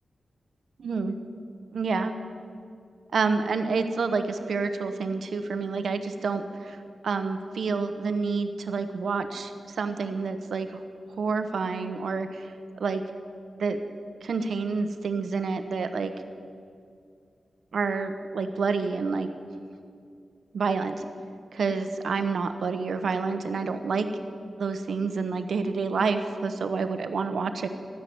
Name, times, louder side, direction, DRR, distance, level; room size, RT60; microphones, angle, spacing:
voice 1, 0.8-1.2 1.7-2.2 3.1-6.8 7.0-10.8 11.2-12.5 12.8-13.0 13.6-13.8 14.2-16.1 17.7-19.3 20.5-20.9 21.5-24.1 24.6-27.7, right 4 dB, 75° right, 8 dB, 1.1 m, -28 dB
13.5 x 10.5 x 9.5 m, 2.3 s
wide cardioid pair, 180°, 0 cm